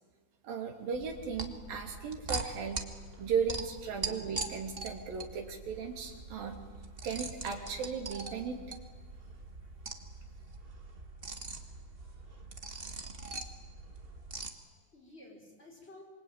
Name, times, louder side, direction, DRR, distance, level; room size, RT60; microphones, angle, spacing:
voice 1, 0.4-2.8 3.2-6.6 7.0-8.6, right 6 dB, 75° right, 2 dB, 4.6 m, -36 dB
sound 1, 0.9-14.5, right 3 dB, 45° right, 0.7 m, -42 dB
voice 2, 14.4-16.0, left 2 dB, 15° left, 0 dB, 5.8 m, -55 dB
27.0 x 23.5 x 9.0 m, 1.5 s
omnidirectional pair, 4.1 m